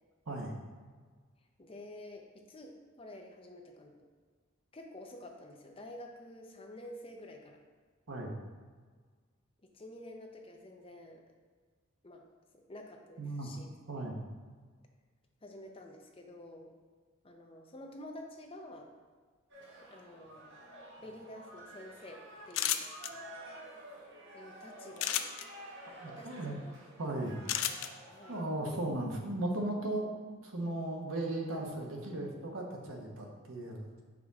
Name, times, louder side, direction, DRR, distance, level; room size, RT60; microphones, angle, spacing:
voice 1, 1.6-4.1 4.7-7.6 9.7-11.2 12.0-12.2 12.5-13.7 13.9-14.1 15.4-16.7 17.2-18.9 19.8-20.6 21.0-22.9 24.3-25.2 26.1-26.7 28.1-28.4, left 1 dB, 25° left, 2 dB, 0.6 m, -49 dB
voice 2, 13.2-14.2 25.9-26.5 27.0-27.4 28.3-33.9, right 1 dB, 80° right, 0 dB, 1.0 m, -37 dB
sound 1, 19.5-28.4, right 1 dB, 60° right, 1.4 m, -51 dB
sound 2, 22.5-23.1 25.0-25.4 27.5-27.9, left 11 dB, 70° left, 0.4 m, -31 dB
5.3 x 5.0 x 3.5 m, 1.5 s
head